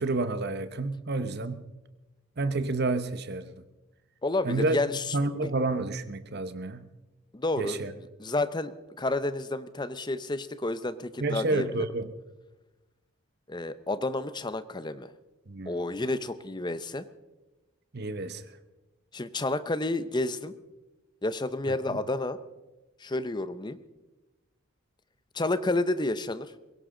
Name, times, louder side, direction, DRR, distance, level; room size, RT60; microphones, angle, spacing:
voice 1, 0.0-1.6 2.4-3.5 4.4-4.8 5.1-6.9 7.6-7.9 11.2-12.1 15.5-15.8 17.9-18.4 21.7-22.0, right 2 dB, 50° right, 0.9 m, -30 dB
voice 2, 4.2-5.0 5.4-5.5 7.3-7.8 8.2-11.9 13.5-15.1 15.7-17.0 19.1-20.5 21.2-22.4 23.0-23.8 25.3-26.5, left 2 dB, 20° left, 0.6 m, -30 dB
22.5 x 16.5 x 3.8 m
head